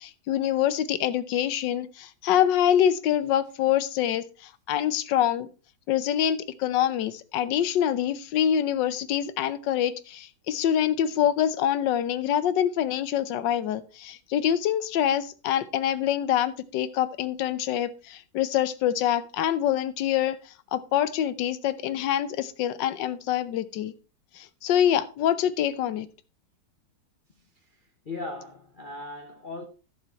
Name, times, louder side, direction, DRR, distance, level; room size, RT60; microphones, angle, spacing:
voice 1, 0.0-5.5 5.9-23.9 24.3-26.1, left 10 dB, 90° left, 1.4 m, -25 dB
voice 2, 28.1-29.6, left 2 dB, 35° left, 0.9 m, -37 dB
11.0 x 6.9 x 4.2 m
omnidirectional pair, 1.9 m